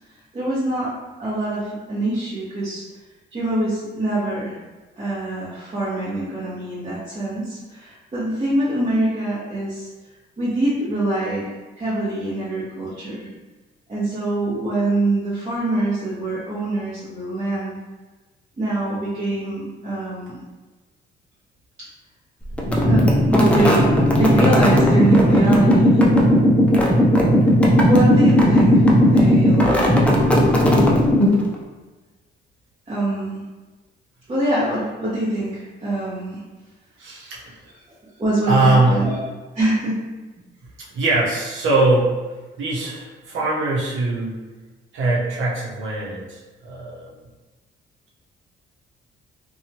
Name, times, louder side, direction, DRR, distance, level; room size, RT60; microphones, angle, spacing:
voice 1, 0.3-0.9 1.2-2.8 3.3-4.5 5.0-9.9 10.4-13.3 13.9-17.8 18.6-20.4 22.8-26.0 27.8-29.9 32.9-33.4 34.3-36.4 38.2-39.2 39.5-40.0, right 1 dB, 35° right, -11 dB, 1.1 m, -24 dB
sound 1, 22.6-31.6, equal, 5° left, 0.5 m, -15 dB
voice 2, 37.0-37.6 38.5-39.0 40.8-42.1 42.6-44.4 44.9-47.1, right 2 dB, 80° right, -4 dB, 0.9 m, -21 dB
2.7 x 2.3 x 2.9 m, 1.2 s
cardioid pair, 90°, 20 cm